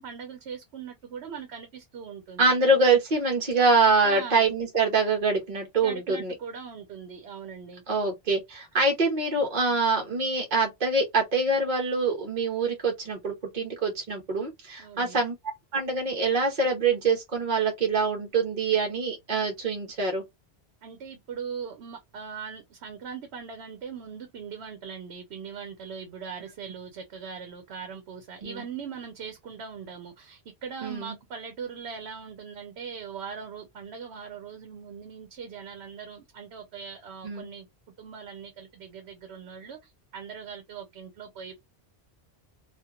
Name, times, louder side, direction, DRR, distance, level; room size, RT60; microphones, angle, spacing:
voice 1, 0.0-2.5 4.0-4.5 5.8-7.8 14.8-15.2 20.8-37.7 38.0-41.5, right 6 dB, 80° right, 0.9 m, -40 dB
voice 2, 2.4-6.3 7.9-15.3 15.7-20.2 28.4-28.6 30.8-31.1 37.2-37.5, right 3 dB, 50° right, 0.9 m, -25 dB
2.8 x 2.5 x 2.3 m
omnidirectional pair, 1.1 m